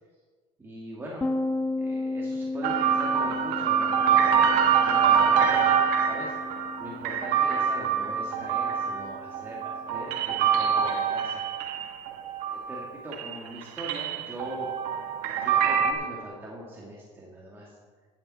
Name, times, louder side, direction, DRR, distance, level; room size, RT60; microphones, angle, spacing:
voice 1, 0.6-1.2 1.8-4.5 4.9-5.7 6.0-6.3 6.8-11.4 12.5-14.7 15.4-17.8, right 1 dB, 15° right, -5 dB, 2.2 m, -41 dB
sound 1, 1.2-10.7, left 2 dB, 10° left, 0.6 m, -35 dB
sound 2, 2.6-12.9 13.1-15.9, right 7 dB, 75° right, 1.3 m, -25 dB
14.0 x 9.1 x 4.3 m, 1.5 s
cardioid pair, 130°, 15 cm